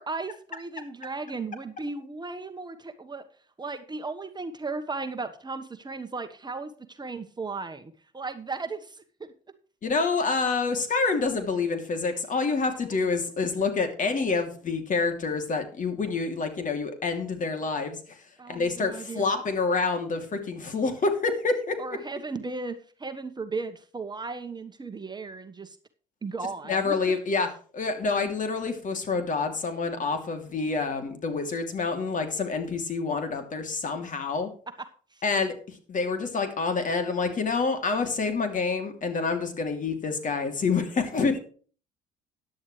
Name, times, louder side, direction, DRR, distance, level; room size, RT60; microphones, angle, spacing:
voice 1, 0.0-3.2 3.6-9.3 18.4-19.4 21.8-25.8 26.2-27.1 35.1-35.2, right 3 dB, 25° right, 8 dB, 1.3 m, -36 dB
voice 2, 9.8-21.8 26.7-27.5 27.7-34.5 35.2-41.4, left 4 dB, 45° left, 6 dB, 2.9 m, -27 dB
13.5 x 10.5 x 3.2 m, 0.41 s
supercardioid pair, 80°, 18 cm